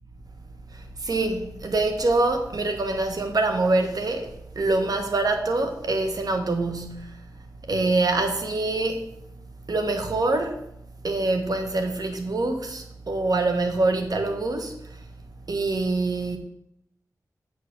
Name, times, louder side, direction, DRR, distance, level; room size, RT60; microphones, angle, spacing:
voice 1, 0.7-7.2 7.7-9.1 9.7-10.6 11.0-15.0 15.5-16.4, right 2 dB, 65° right, 1.4 m, -25 dB
8.0 x 4.8 x 6.9 m
cardioid pair, 50°, 7 cm